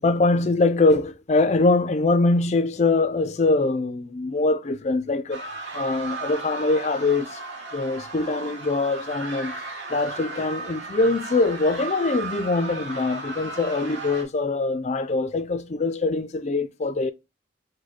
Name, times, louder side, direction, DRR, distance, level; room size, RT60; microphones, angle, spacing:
voice 1, 0.0-5.4 5.7-7.4 7.7-9.5 9.9-17.1, left 3 dB, 35° left, 0.4 m, -23 dB
sound 1, 5.3-14.2, right 3 dB, 60° right, 1.1 m, -35 dB
4.9 x 2.1 x 4.0 m
head